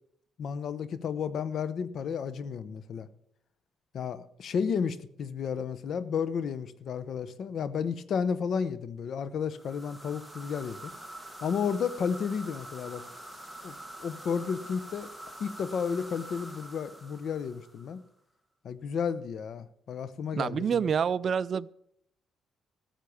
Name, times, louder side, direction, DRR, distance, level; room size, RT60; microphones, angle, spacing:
voice 1, 0.4-3.1 3.9-10.9 11.4-13.0 13.6-15.1 15.4-18.0 18.6-20.9, left 6 dB, 65° left, 15 dB, 0.8 m, -32 dB
sound 1, 9.5-18.0, right 1 dB, ahead, 1.7 m, -46 dB
voice 2, 20.3-21.7, right 7 dB, 50° right, 16 dB, 0.4 m, -27 dB
13.5 x 7.5 x 6.9 m, 0.70 s
cardioid pair, 90°, 0 cm